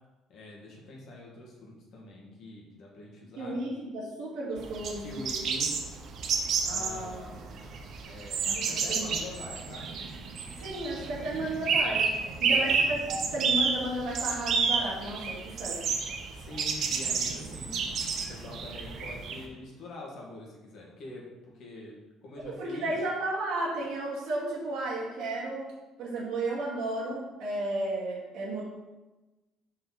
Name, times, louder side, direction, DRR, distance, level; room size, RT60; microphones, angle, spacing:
voice 1, 0.3-3.6 5.0-5.8 6.6-7.8 8.0-9.9 12.4-13.0 16.3-17.9 18.3-22.9, left 2 dB, 65° left, -2 dB, 1.7 m, -44 dB
voice 2, 3.4-5.2 6.7-7.1 8.4-9.1 10.6-12.1 12.4-15.8 22.4-25.7 26.0-28.6, right 2 dB, 75° right, -5 dB, 2.1 m, -33 dB
sound 1, 4.6-19.4, right 5 dB, 60° right, 0.7 m, -30 dB
5.3 x 4.8 x 4.0 m, 1.1 s
cardioid pair, 100°, 0 cm